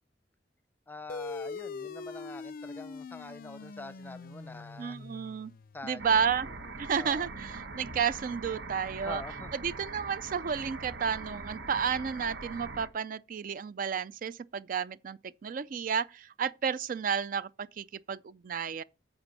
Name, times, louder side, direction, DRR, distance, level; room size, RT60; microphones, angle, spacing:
voice 1, 0.9-5.0 5.7-7.3 9.0-9.5, left 2 dB, 10° left, 0.6 m, -45 dB
sound 1, 1.1-6.0, left 4 dB, 55° left, 0.4 m, -42 dB
voice 2, 4.8-5.5 5.8-6.5 6.8-9.2 9.6-18.8, right 6 dB, 50° right, 0.4 m, -32 dB
sound 2, 6.0-12.9, right 3 dB, 75° right, 1.1 m, -42 dB
9.6 x 7.0 x 4.0 m
head